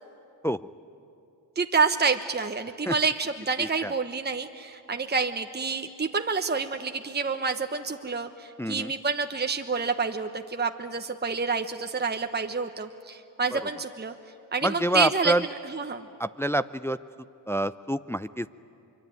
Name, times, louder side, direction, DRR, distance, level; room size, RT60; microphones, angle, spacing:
voice 1, 1.6-14.1 14.5-15.3 15.6-16.0, right 4 dB, 20° right, 6 dB, 1.2 m, -28 dB
voice 2, 3.6-3.9 8.6-8.9 13.5-13.6 14.6-15.4 16.2-17.0 17.5-18.5, right 1 dB, 5° left, 13 dB, 0.6 m, -27 dB
24.0 x 24.0 x 9.4 m, 2.6 s
supercardioid pair, 50°, 45 cm